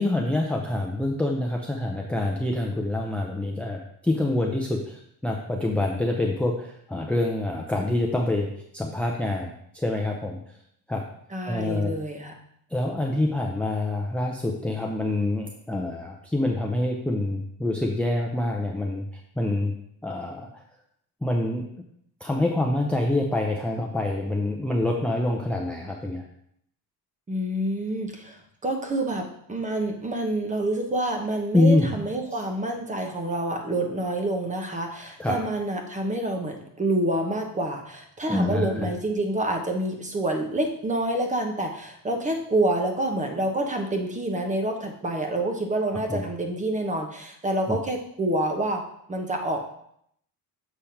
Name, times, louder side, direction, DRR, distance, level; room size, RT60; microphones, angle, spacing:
voice 1, 0.0-8.5 8.7-10.4 10.9-11.0 11.5-11.9 12.7-19.0 19.4-19.7 20.0-20.6 21.2-21.6 22.2-26.2 31.5-31.9 35.2-35.4 38.3-38.9 46.1-46.2 47.7-47.8, left 2 dB, 5° left, 0 dB, 0.6 m, -26 dB
voice 2, 11.3-12.3 27.3-48.8 49.1-49.6, right 1 dB, 20° right, 3 dB, 1.1 m, -27 dB
7.2 x 3.4 x 5.8 m, 0.70 s
cardioid pair, 140°, 38 cm